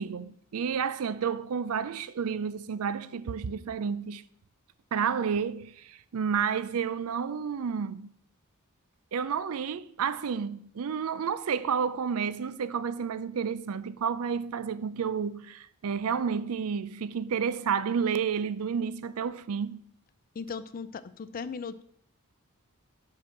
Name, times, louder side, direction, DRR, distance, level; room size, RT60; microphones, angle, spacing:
voice 1, 0.0-4.2 4.9-8.1 9.1-19.8, right 6 dB, 70° right, 0.4 m, -30 dB
voice 2, 20.3-21.8, left 5 dB, 40° left, 0.4 m, -37 dB
6.0 x 5.6 x 6.4 m
head